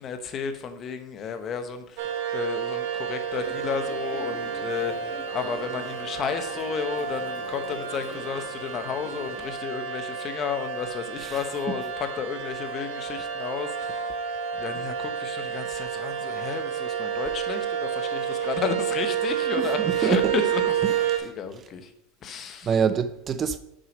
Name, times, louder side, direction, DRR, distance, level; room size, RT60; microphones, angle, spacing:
voice 1, 0.0-14.2 14.5-20.8 21.2-21.9 22.2-22.8, left 6 dB, 35° left, 1.0 m, -32 dB
sound 1, 2.0-21.2, right 8 dB, 75° right, 1.2 m, -30 dB
sound 2, 3.3-9.5, left 4 dB, 65° left, 1.5 m, -43 dB
voice 2, 19.5-20.3 21.1-21.3 22.6-23.6, right 7 dB, 30° right, 0.4 m, -26 dB
6.3 x 4.8 x 6.3 m
supercardioid pair, 130°, 0 cm